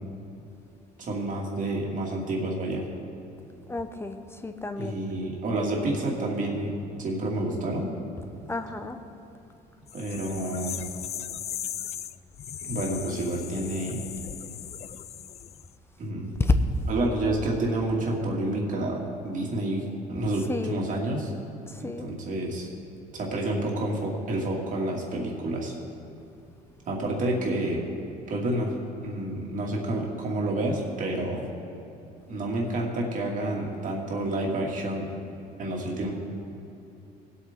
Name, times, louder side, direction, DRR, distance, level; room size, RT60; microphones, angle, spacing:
voice 1, 1.0-2.8 4.8-6.7 7.0-7.9 9.9-10.8 12.7-14.0 16.0-16.3 16.9-21.3 21.8-22.7 23.1-25.7 26.9-27.8 28.3-28.7 29.0-31.5 32.3-35.1 35.6-36.1, right 1 dB, 50° right, -1 dB, 2.3 m, -29 dB
voice 2, 3.7-5.0 8.5-9.0 16.4-16.5 20.5-20.8 21.7-22.1, left 3 dB, 15° left, 8 dB, 0.7 m, -29 dB
sound 1, 9.9-15.7, left 9 dB, 40° left, 0.4 m, -37 dB
19.5 x 8.5 x 3.7 m, 2.8 s
cardioid pair, 110°, 17 cm